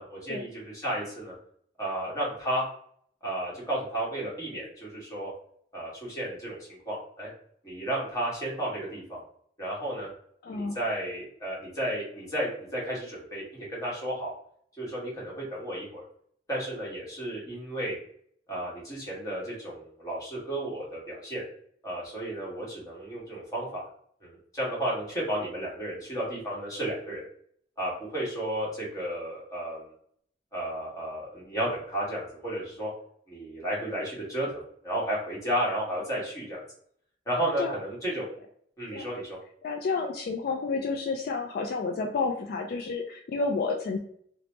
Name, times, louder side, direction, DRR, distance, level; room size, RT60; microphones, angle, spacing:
voice 1, 0.0-1.3 1.8-2.6 3.2-5.3 5.7-7.3 7.6-9.2 9.6-10.1 10.5-14.3 14.8-16.0 16.5-17.9 18.5-21.4 21.8-23.9 24.2-27.2 27.8-29.8 30.5-32.9 33.3-36.6 37.3-38.3 38.8-39.4, right 1 dB, 20° left, -6 dB, 1.3 m, -33 dB
voice 2, 10.4-10.8 18.5-18.6 37.4-37.8 38.9-39.1 39.6-44.0, left 4 dB, 55° left, 2 dB, 0.3 m, -30 dB
2.9 x 2.1 x 3.0 m, 0.65 s
head